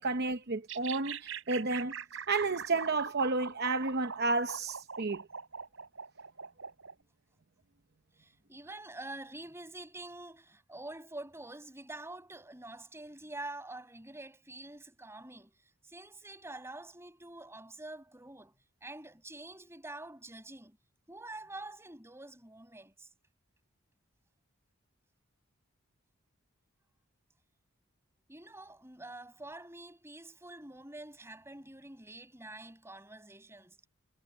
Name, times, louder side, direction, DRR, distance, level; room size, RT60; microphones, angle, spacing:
voice 1, 0.0-1.9 2.3-5.2, right 3 dB, 50° right, 0.8 m, -31 dB
sound 1, 0.7-7.0, right 6 dB, 65° right, 6.0 m, -42 dB
voice 2, 8.2-15.6 15.8-20.8 21.1-23.1 28.3-33.9, right 2 dB, 10° right, 7.2 m, -47 dB
head